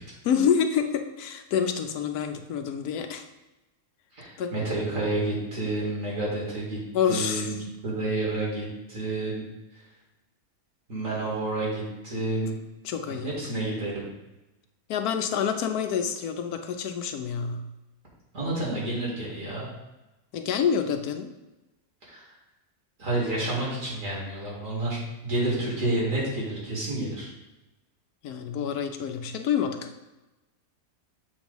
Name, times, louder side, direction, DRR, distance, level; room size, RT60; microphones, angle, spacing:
voice 1, 0.2-3.2 4.4-4.5 6.9-7.5 12.8-13.3 14.9-17.6 20.3-21.3 28.2-29.9, left 7 dB, 90° left, 7 dB, 1.2 m, -27 dB
voice 2, 4.1-6.8 7.1-7.5 7.8-9.4 9.7-9.8 10.9-12.5 13.2-14.0 18.3-19.7 22.1-22.3 23.0-27.3, right 2 dB, 60° right, -5 dB, 2.5 m, -29 dB
7.1 x 3.0 x 5.3 m, 1.0 s
omnidirectional pair, 1.5 m